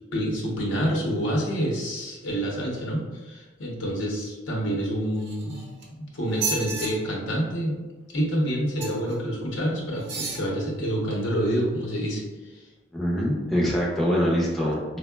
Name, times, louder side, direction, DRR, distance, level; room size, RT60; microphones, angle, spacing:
voice 1, 0.1-5.6 5.9-7.8 8.1-12.2 12.5-12.6, equal, 75° left, -3 dB, 0.7 m, -27 dB
sound 1, 5.2-5.9 6.3-6.9 8.8-9.1 10.0-10.5 11.1-11.2, right 4 dB, 55° right, 0.6 m, -32 dB
voice 2, 12.9-15.0, equal, ahead, -5 dB, 0.4 m, -24 dB
3.6 x 2.0 x 2.2 m, 1.2 s
head